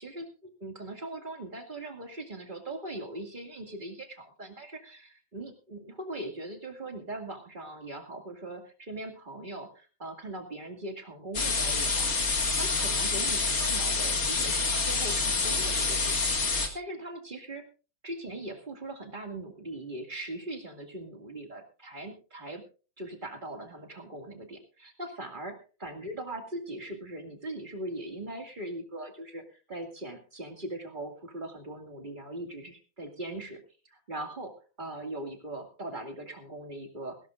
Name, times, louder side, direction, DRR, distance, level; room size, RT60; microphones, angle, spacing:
voice 1, 0.0-16.2 16.7-17.6 18.0-22.6 23.0-37.2, right 1 dB, 25° right, 3 dB, 2.3 m, -40 dB
sound 1, 11.3-16.7, left 4 dB, 35° left, 1.8 m, -27 dB
18.5 x 16.5 x 2.5 m, 0.35 s
omnidirectional pair, 2.3 m